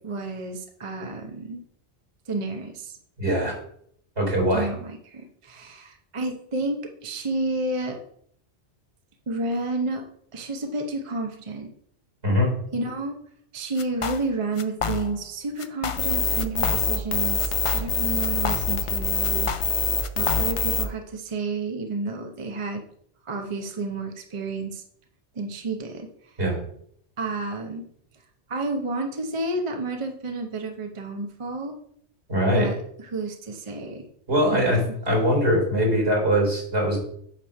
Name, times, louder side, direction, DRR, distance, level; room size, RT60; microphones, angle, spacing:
voice 1, 0.0-1.6 2.3-3.0 4.5-8.0 9.3-10.0 10.3-11.7 12.7-13.2 13.5-19.5 20.2-22.8 23.3-24.8 25.3-26.1 27.2-27.9 28.5-31.7 32.5-34.1 34.5-34.8, right 2 dB, 30° right, 3 dB, 0.8 m, -30 dB
voice 2, 3.2-3.6 4.2-4.7 12.2-12.5 26.4-26.6 32.3-32.7 34.3-37.0, equal, 70° right, -1 dB, 3.8 m, -22 dB
sound 1, 13.8-14.3 14.6-15.3 15.6-16.1 16.4-17.1 17.4-18.9 19.2-20.7, left 7 dB, 55° left, 0.3 m, -31 dB
sound 2, 16.0-20.8, left 6 dB, 85° left, 1.2 m, -25 dB
9.0 x 3.1 x 6.4 m, 0.66 s
omnidirectional pair, 1.2 m